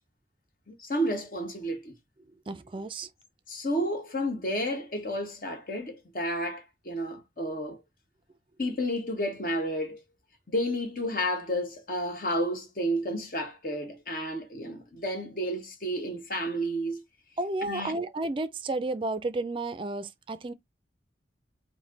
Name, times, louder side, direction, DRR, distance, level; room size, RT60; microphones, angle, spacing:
voice 1, 0.7-1.9 3.5-7.8 8.6-10.0 10.5-17.0 17.6-18.0, equal, 50° left, 1.3 m, -31 dB
voice 2, 2.5-3.1 17.4-20.5, right 2 dB, 30° right, 0.4 m, -32 dB
5.1 x 2.1 x 3.8 m
head